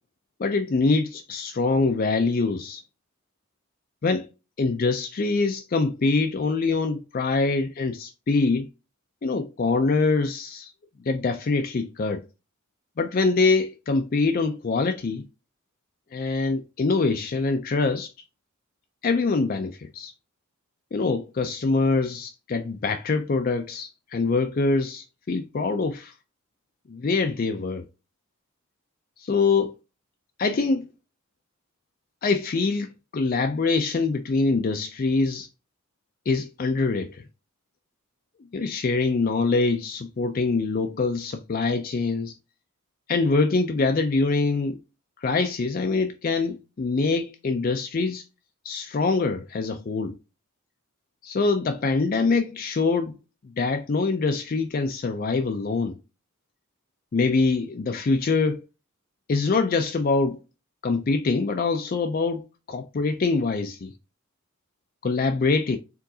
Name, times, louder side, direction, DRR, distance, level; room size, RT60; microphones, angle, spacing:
voice 1, 0.4-2.8 4.0-4.3 4.6-8.7 9.2-10.7 11.1-12.2 13.0-15.3 16.1-18.1 19.0-20.1 20.9-26.1 26.9-27.8 29.2-29.7 30.4-30.9 32.2-35.5 36.3-37.2 38.5-42.4 43.1-44.8 45.2-48.2 48.6-50.2 51.2-53.1 53.6-55.9 57.1-58.6 59.3-60.4 60.8-63.9 65.0-65.8, left 3 dB, 40° left, 0.4 m, -24 dB
4.6 x 3.7 x 2.7 m
head